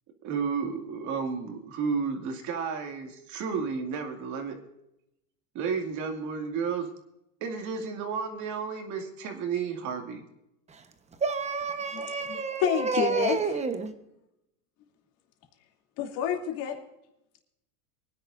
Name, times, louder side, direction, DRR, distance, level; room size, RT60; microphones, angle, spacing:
voice 1, 0.2-4.6 5.5-6.9 7.4-10.2, right 5 dB, 40° right, 4 dB, 2.4 m, -32 dB
voice 2, 11.2-13.9, right 5 dB, 15° right, 8 dB, 1.1 m, -29 dB
voice 3, 11.9-13.6 16.0-16.8, left 9 dB, 50° left, 2 dB, 2.9 m, -29 dB
24.0 x 10.5 x 2.6 m, 0.85 s
supercardioid pair, 145°, 44 cm